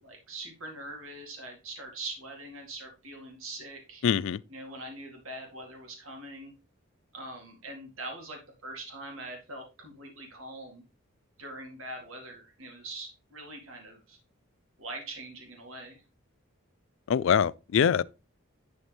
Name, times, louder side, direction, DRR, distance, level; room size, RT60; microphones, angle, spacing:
voice 1, 0.0-4.0 4.5-6.5 7.1-10.8 11.4-14.2 14.8-16.0, right 2 dB, 75° right, 2.2 m, -43 dB
voice 2, 4.0-4.4 17.1-18.0, left 7 dB, 60° left, 0.3 m, -24 dB
11.0 x 4.2 x 3.4 m
head